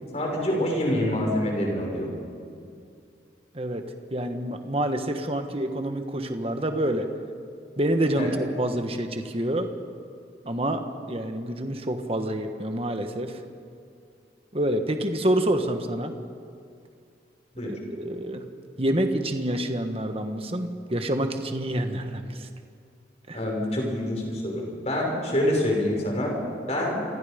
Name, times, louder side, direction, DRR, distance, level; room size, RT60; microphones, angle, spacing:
voice 1, 0.1-2.1 8.2-8.3 17.5-17.7 23.3-26.4 26.7-27.0, left 1 dB, 35° left, -1 dB, 5.9 m, -26 dB
voice 2, 4.1-7.1 7.8-9.7 10.4-10.8 11.1-13.4 14.5-16.1 17.6-18.4 18.8-22.5 23.3-23.4, right 1 dB, 30° right, 6 dB, 1.5 m, -27 dB
28.0 x 24.5 x 5.2 m, 2.4 s
head